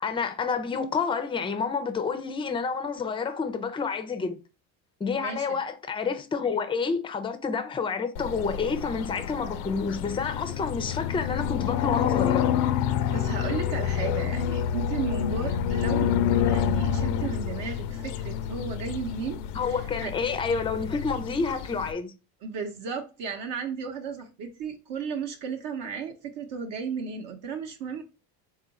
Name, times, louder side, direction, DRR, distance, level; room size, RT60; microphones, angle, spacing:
voice 1, 0.0-4.4 5.0-12.5 19.5-22.1, left 5 dB, 10° left, 0.4 m, -29 dB
voice 2, 5.2-5.6 13.1-20.1 22.4-28.0, right 6 dB, 60° right, 0.8 m, -34 dB
sound 1, 8.2-21.9, left 9 dB, 85° left, 0.6 m, -28 dB
3.7 x 2.4 x 4.0 m
supercardioid pair, 95°, 47 cm